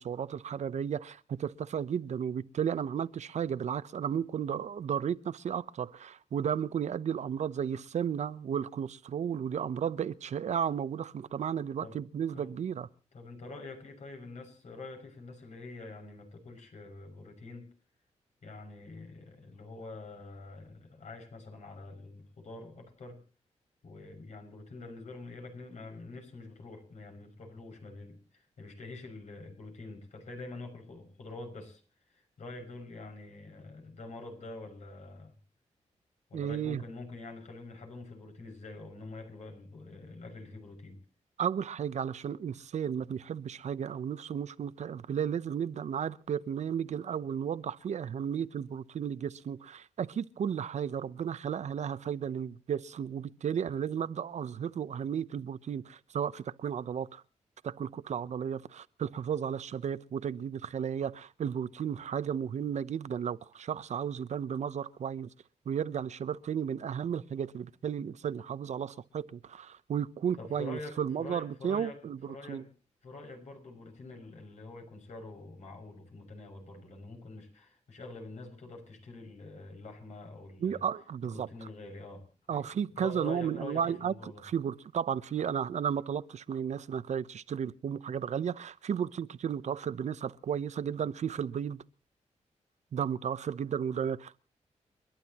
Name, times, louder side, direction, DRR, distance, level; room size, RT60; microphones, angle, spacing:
voice 1, 0.0-12.9 36.3-36.8 41.4-57.2 57.6-65.3 65.7-72.6 80.6-81.5 82.5-84.1 84.4-91.8 92.9-94.4, right 8 dB, 70° right, 0.8 m, -34 dB
voice 2, 13.1-17.7 18.4-23.2 23.8-31.8 32.1-35.3 36.3-41.0 70.4-72.0 72.3-72.7 73.0-80.8 81.2-84.4, left 2 dB, 70° left, 6.3 m, -46 dB
30.0 x 11.5 x 3.0 m
cardioid pair, 100°, 12 cm